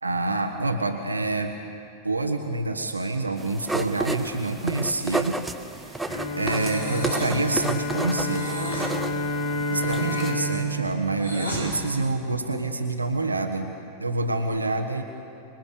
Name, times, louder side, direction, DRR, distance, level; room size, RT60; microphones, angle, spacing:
voice 1, 0.0-1.6 2.0-5.4 5.7-8.5 9.7-13.7 14.0-15.0, right 2 dB, 80° right, 4 dB, 1.4 m, -27 dB
sound 1, 3.4-10.3, right 2 dB, 5° right, 1.2 m, -32 dB
Bowed string instrument, 6.1-12.3, left 1 dB, 70° left, 4.2 m, -30 dB
Breathing, 6.4-7.5 8.3-8.9 9.7-11.7, right 1 dB, 85° left, 6.7 m, -35 dB
27.0 x 21.5 x 6.7 m, 2.6 s
figure-of-eight pair, 90°, 0 cm